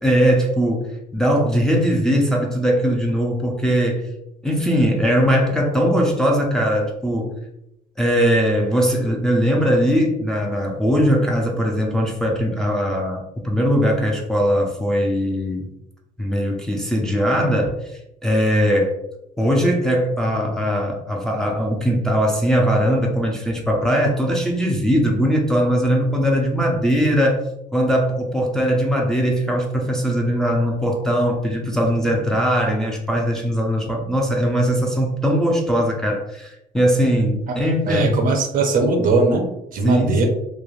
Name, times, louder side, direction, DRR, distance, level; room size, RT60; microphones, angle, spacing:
voice 1, 0.0-0.9 1.1-4.1 4.4-7.3 8.0-15.7 16.2-17.8 18.2-19.0 19.4-27.4 27.7-38.2 39.8-40.3, equal, 5° left, -1 dB, 0.4 m, -20 dB
voice 2, 37.9-39.4 39.7-40.3, right 3 dB, 55° right, 4 dB, 0.6 m, -19 dB
3.1 x 2.0 x 2.4 m, 0.81 s
cardioid pair, 110°, 17 cm